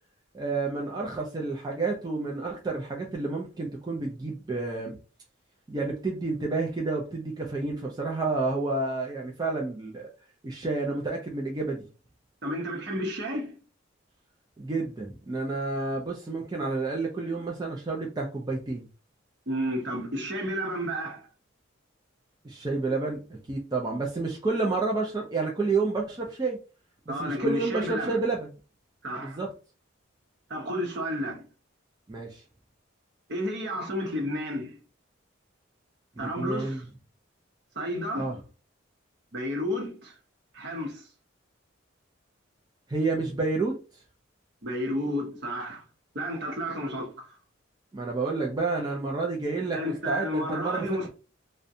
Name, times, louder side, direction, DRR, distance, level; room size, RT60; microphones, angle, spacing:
voice 1, 0.3-5.0 5.7-10.1 10.4-11.8 14.6-18.9 22.4-23.2 23.5-26.6 27.1-28.5 29.2-29.5 32.1-32.4 36.2-36.8 38.2-38.3 42.9-43.8 47.9-51.1, right 3 dB, 20° right, 0.3 m, -30 dB
voice 2, 12.4-13.6 19.5-21.3 27.1-28.2 29.0-29.4 30.5-31.5 33.3-34.8 36.2-36.8 37.8-38.4 39.3-40.2 40.5-41.1 44.6-45.8 46.1-47.3 49.7-51.1, equal, 55° right, 0.7 m, -31 dB
2.5 x 2.1 x 2.6 m
head